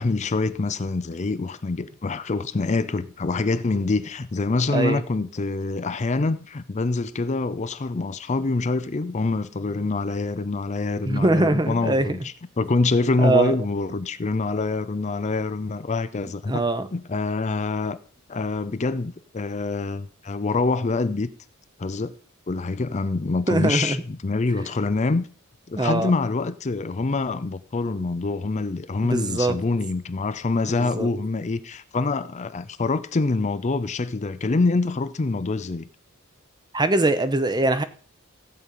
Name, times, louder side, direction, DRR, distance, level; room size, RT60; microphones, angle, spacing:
voice 1, 0.0-16.6 16.9-18.0 18.3-21.3 21.8-22.1 22.5-25.3 25.7-35.9, left 3 dB, 35° left, 0.5 m, -25 dB
voice 2, 4.7-5.0 11.1-12.1 13.2-13.5 16.5-16.9 23.5-24.0 25.8-26.1 29.0-29.6 30.8-31.1 36.7-37.8, right 2 dB, 20° right, 0.8 m, -22 dB
15.5 x 5.3 x 8.3 m
head